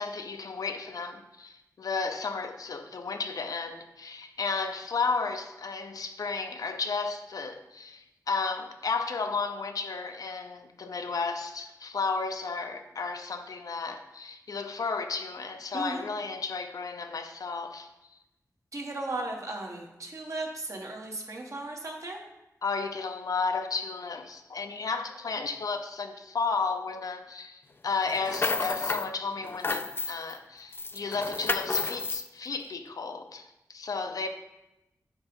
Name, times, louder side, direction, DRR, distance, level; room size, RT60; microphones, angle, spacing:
voice 1, 0.0-17.9 22.6-34.3, left 4 dB, 75° left, 0.6 m, -33 dB
voice 2, 18.7-22.2, right 2 dB, 55° right, 1.2 m, -36 dB
sound 1, 28.1-29.1 29.4-30.4 30.7-32.3, left 3 dB, 35° left, 0.3 m, -31 dB
8.5 x 2.9 x 5.2 m
wide cardioid pair, 110°, 6 cm